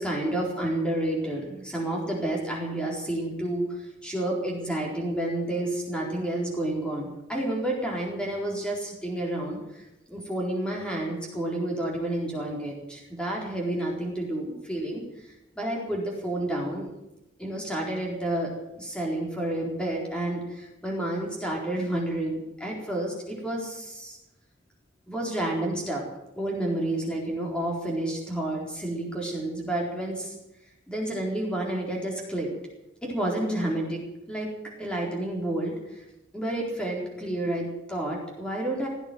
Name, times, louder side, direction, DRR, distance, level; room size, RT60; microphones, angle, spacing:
voice 1, 0.0-3.7 4.0-9.6 10.1-15.0 15.6-16.9 17.4-24.2 25.1-26.0 26.4-30.3 30.9-32.5 33.0-34.0 34.3-34.5 34.8-36.0 36.3-38.9, right 1 dB, 5° left, -2 dB, 4.1 m, -30 dB
16.5 x 9.3 x 9.3 m, 0.91 s
head